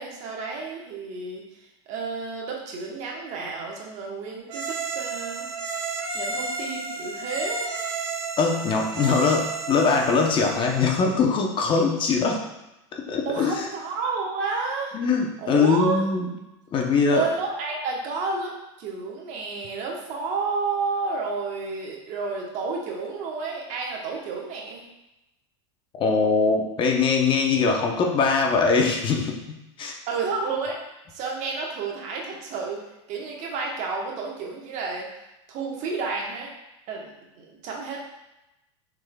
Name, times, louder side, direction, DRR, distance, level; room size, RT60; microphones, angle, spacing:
voice 1, 0.0-5.5 6.1-7.7 13.2-15.0 15.4-16.0 17.0-18.5 18.8-24.8 30.1-30.8 31.1-32.8 33.1-35.1 35.5-36.5 36.9-37.1 37.4-38.0, right 4 dB, 50° right, -1 dB, 1.2 m, -31 dB
Italian Accordeon, 4.5-11.2, right 4 dB, 65° right, 1.5 m, -32 dB
voice 2, 8.4-12.4 12.9-13.7 14.9-16.3 16.7-17.2 26.0-29.9, left 4 dB, 35° left, 1 dB, 0.7 m, -22 dB
6.0 x 3.7 x 2.3 m, 0.93 s
hypercardioid pair, 110°, 15 cm